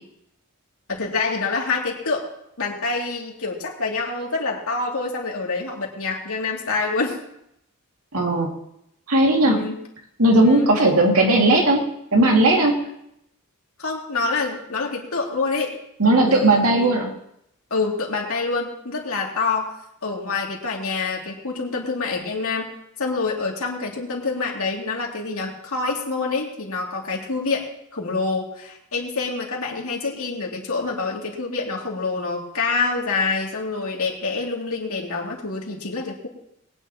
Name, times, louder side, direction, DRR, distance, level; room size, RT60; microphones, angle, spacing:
voice 1, 0.9-2.3 2.6-7.2 9.4-9.8 10.4-10.7 13.8-15.8 16.2-16.9 17.7-19.8 20.0-22.7 23.0-36.3, left 3 dB, 70° left, -1 dB, 2.7 m, -26 dB
voice 2, 8.1-8.5 9.1-9.6 10.2-11.8 12.1-12.8 16.0-17.1, right 2 dB, 75° right, 0 dB, 2.4 m, -17 dB
21.5 x 9.7 x 3.0 m, 0.77 s
head